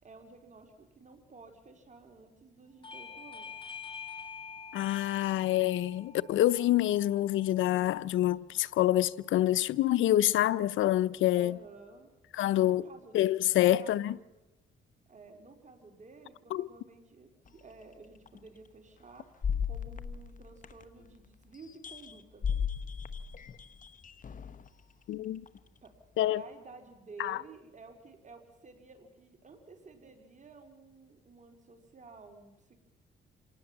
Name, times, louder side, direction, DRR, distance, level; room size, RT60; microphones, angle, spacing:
voice 1, 0.0-3.5 11.3-12.1 12.6-13.2 13.6-14.3 15.1-19.3 19.6-22.4 25.8-25.9 26.3-32.8, right 4 dB, 40° right, 4.2 m, -53 dB
Bell / Doorbell, 2.8-8.0, left 6 dB, 25° left, 2.2 m, -47 dB
voice 2, 4.7-11.6 12.4-12.8 13.1-14.2 16.5-16.7 25.1-25.4 26.2-26.4 27.2-27.4, left 13 dB, 80° left, 0.7 m, -27 dB
sound 1, 17.5-17.6 18.3-18.4 19.4-21.1 21.5-24.7 25.5-25.6, left 7 dB, 40° left, 1.4 m, -36 dB
27.0 x 18.5 x 7.3 m
cardioid pair, 90°, 20 cm